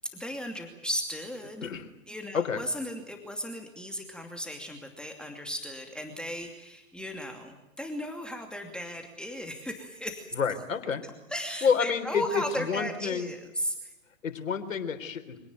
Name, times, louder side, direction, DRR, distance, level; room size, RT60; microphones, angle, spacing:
voice 1, 0.1-1.7 2.1-10.3 11.3-13.9, equal, ahead, 3 dB, 2.6 m, -36 dB
voice 2, 10.3-11.0 11.6-12.2 12.7-13.3 14.2-15.4, left 6 dB, 75° left, 9 dB, 3.8 m, -29 dB
26.0 x 18.0 x 9.4 m, 0.95 s
hypercardioid pair, 125°, 40 cm